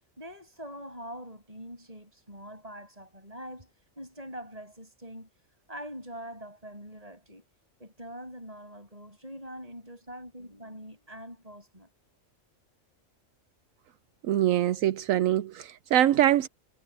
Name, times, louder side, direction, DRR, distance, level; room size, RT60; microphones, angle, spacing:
voice 1, 0.2-3.7 4.0-5.3 5.7-7.4 7.8-11.9, equal, 25° right, 8.1 m, -43 dB
voice 2, 14.3-16.5, right 12 dB, 80° right, 1.1 m, -24 dB
omnidirectional pair, 1.4 m